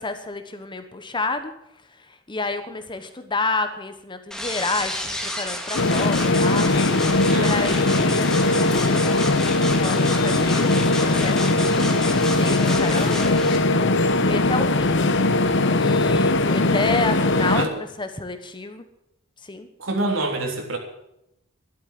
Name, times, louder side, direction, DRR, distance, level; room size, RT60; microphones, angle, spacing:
voice 1, 0.0-1.5 2.1-6.7 7.3-8.2 8.6-10.7 11.0-13.3 14.2-15.0 15.4-17.7 18.0-18.9 19.4-19.7, left 3 dB, 25° left, 8 dB, 1.1 m, -30 dB
sound 1, 4.3-13.6, left 1 dB, 5° left, 1.9 m, -31 dB
sound 2, 5.7-17.7, left 2 dB, 65° left, 1.0 m, -20 dB
voice 2, 7.3-7.8 17.5-17.7 19.8-20.8, right 2 dB, 80° right, 2 dB, 3.4 m, -26 dB
12.0 x 12.0 x 7.6 m, 0.81 s
head